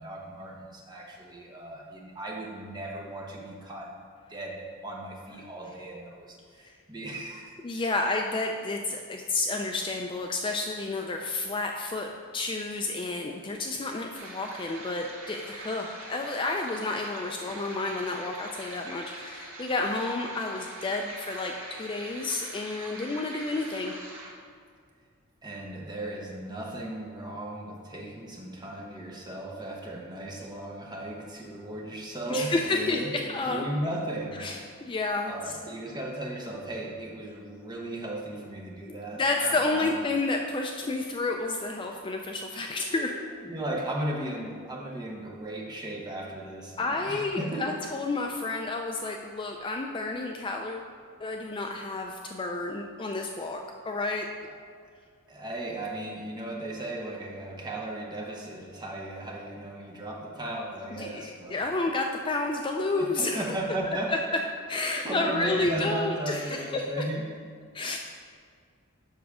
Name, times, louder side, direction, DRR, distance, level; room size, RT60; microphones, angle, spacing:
voice 1, 0.0-4.0 4.3-7.9 25.4-33.1 33.5-34.5 35.3-40.0 42.6-47.7 54.4-54.5 54.8-54.9 55.3-61.6 63.0-64.1 65.0-67.3, right 1 dB, 20° right, -2 dB, 1.1 m, -36 dB
voice 2, 7.6-23.9 32.3-33.0 33.3-33.6 34.4-35.3 38.8-43.2 46.8-50.9 51.2-53.6 53.9-54.3 60.9-63.4 64.3-64.4 64.7-66.9 67.7-68.0, left 3 dB, 20° left, 2 dB, 0.3 m, -30 dB
sound 1, 14.1-24.3, right 2 dB, 65° right, 1.5 m, -43 dB
7.2 x 6.0 x 4.8 m, 2.1 s
head